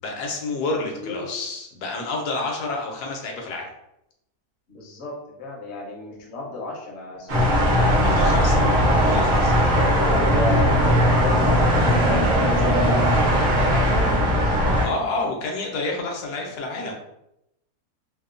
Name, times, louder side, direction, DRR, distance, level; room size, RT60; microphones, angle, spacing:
voice 1, 0.0-3.7 8.0-8.6 8.9-9.6 14.8-16.9, left 3 dB, 85° left, 0 dB, 1.1 m, -29 dB
voice 2, 0.7-1.2 4.7-9.2 9.8-14.9 15.7-16.0, left 2 dB, 60° left, -1 dB, 0.8 m, -33 dB
sound 1, 7.3-14.9, equal, 60° right, 0.6 m, -19 dB
2.9 x 2.0 x 2.4 m, 0.83 s
omnidirectional pair, 1.7 m